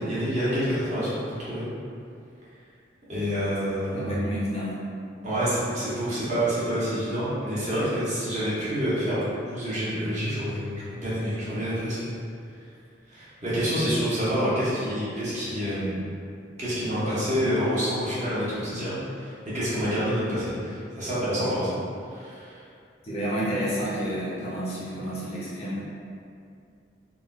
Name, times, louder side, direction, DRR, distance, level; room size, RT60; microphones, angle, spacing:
voice 1, 0.0-1.7 3.1-4.1 5.2-12.1 13.1-16.0 16.6-21.7 22.1-22.6, equal, 40° right, -11 dB, 0.9 m, -27 dB
voice 2, 3.9-4.7 23.0-25.8, equal, 30° left, -8 dB, 0.5 m, -30 dB
3.7 x 2.1 x 2.3 m, 2.4 s
head